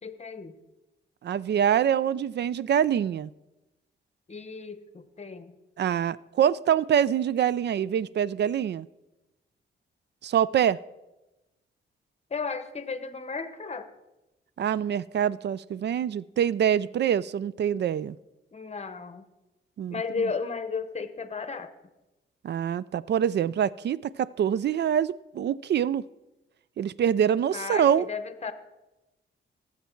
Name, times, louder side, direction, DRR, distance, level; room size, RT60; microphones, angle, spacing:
voice 1, 0.0-0.6 4.3-5.6 12.3-13.9 18.5-19.3 19.9-21.7 27.5-28.5, left 5 dB, 35° left, 12 dB, 1.0 m, -34 dB
voice 2, 1.2-3.3 5.8-8.9 10.2-10.8 14.6-18.2 19.8-20.0 22.4-26.0 26.8-28.1, right 9 dB, 60° right, 20 dB, 0.4 m, -25 dB
18.0 x 7.3 x 4.5 m, 1.0 s
cardioid pair, 95°, 20 cm